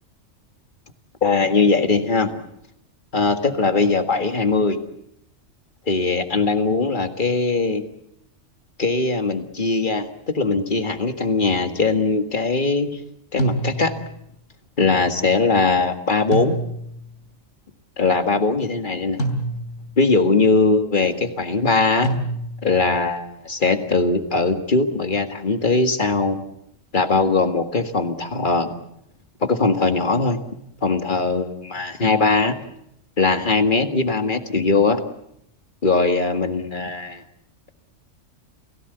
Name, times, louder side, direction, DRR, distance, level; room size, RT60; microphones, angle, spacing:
voice 1, 1.2-2.4 3.1-4.8 5.9-7.8 8.8-12.9 13.3-13.9 14.8-16.6 18.0-19.2 20.0-22.1 22.6-26.4 26.9-28.7 29.4-30.4 30.8-32.5 33.2-35.0 35.8-37.2, left 3 dB, 40° left, 7 dB, 1.9 m, -20 dB
sound 1, 13.4-14.2 16.3-17.1 19.2-20.0 22.0-22.8, right 1 dB, 70° left, 3.4 m, -26 dB
29.0 x 17.5 x 8.1 m, 0.76 s
omnidirectional pair, 1.3 m